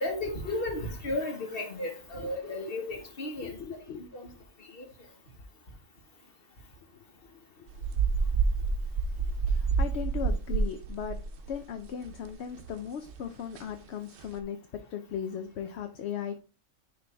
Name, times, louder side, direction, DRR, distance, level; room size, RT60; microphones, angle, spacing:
voice 1, 0.0-3.5 4.1-4.2 4.8-4.9, left 2 dB, 50° left, 1.5 m, -33 dB
voice 2, 3.4-4.1 6.9-7.7 9.5-11.2 11.5-14.6 14.9-16.4, left 8 dB, 65° left, 0.8 m, -38 dB
sound 1, 7.7-12.3 12.6-12.7 13.1-13.2 13.6-13.7 14.2-14.4, right 5 dB, 65° right, 0.9 m, -28 dB
9.8 x 3.4 x 3.3 m
omnidirectional pair, 1.3 m